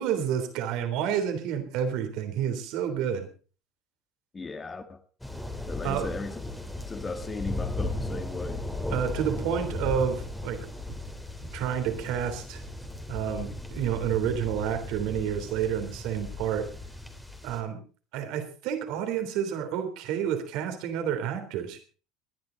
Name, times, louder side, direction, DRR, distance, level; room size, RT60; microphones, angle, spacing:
voice 1, 0.0-3.3 5.8-6.1 8.9-10.6 11.5-12.6 13.1-16.7 17.4-17.8 18.1-21.8, right 8 dB, 70° right, 3.5 m, -29 dB
voice 2, 4.3-5.0 5.7-6.4 6.9-8.6, left 4 dB, 25° left, 2.1 m, -36 dB
sound 1, 5.2-17.6, left 1 dB, 5° left, 2.9 m, -36 dB
20.0 x 11.0 x 4.0 m
hypercardioid pair, 85°, 0 cm